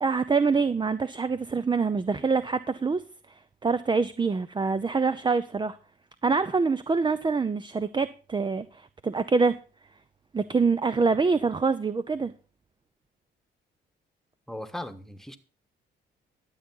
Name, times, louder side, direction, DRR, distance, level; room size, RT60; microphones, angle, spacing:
voice 1, 0.0-3.0 3.3-5.8 6.2-9.6 10.3-12.3, right 4 dB, 25° right, 0.6 m, -25 dB
voice 2, 14.5-15.4, left 1 dB, ahead, 1.4 m, -37 dB
12.0 x 8.3 x 5.6 m
cardioid pair, 90°, 20 cm